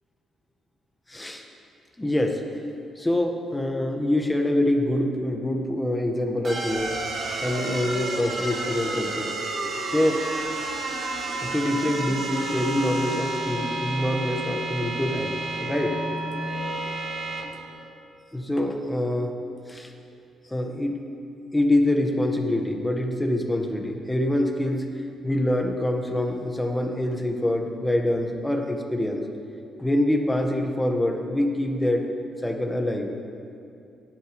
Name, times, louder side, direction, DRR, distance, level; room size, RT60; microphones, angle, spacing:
voice 1, 1.1-1.4 2.0-2.4 2.9-7.0 7.4-9.3 9.9-10.2 11.3-15.9 17.4-17.6 18.3-19.3 19.7-19.9 20.5-21.0 21.5-24.9 25.2-29.2 29.8-32.1 32.4-33.2, left 1 dB, 10° left, 3 dB, 1.7 m, -25 dB
sound 1, 6.4-17.4, right 2 dB, 55° right, 3.5 m, -30 dB
17.5 x 10.5 x 3.4 m, 2.5 s
supercardioid pair, 55°, 0 cm